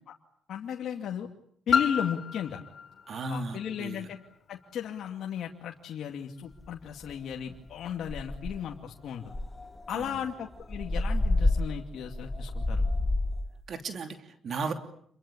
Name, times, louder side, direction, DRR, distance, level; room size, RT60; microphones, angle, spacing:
voice 1, 0.5-1.3 1.7-2.6 3.2-4.2 4.5-9.3 9.9-12.8, left 8 dB, 70° left, 2 dB, 2.4 m, -35 dB
Piano, 1.7-7.1 7.9-8.0, left 6 dB, 50° left, 3.3 m, -34 dB
voice 2, 3.1-4.0 9.9-10.1 13.7-14.7, right 4 dB, 55° right, 6 dB, 2.9 m, -35 dB
sound 1, 6.6-6.7 7.1-7.3 7.7-7.8 8.1-8.7 9.3-13.5, left 2 dB, 15° left, 1.7 m, -29 dB
28.5 x 22.5 x 8.7 m, 0.67 s
cardioid pair, 90°, 0 cm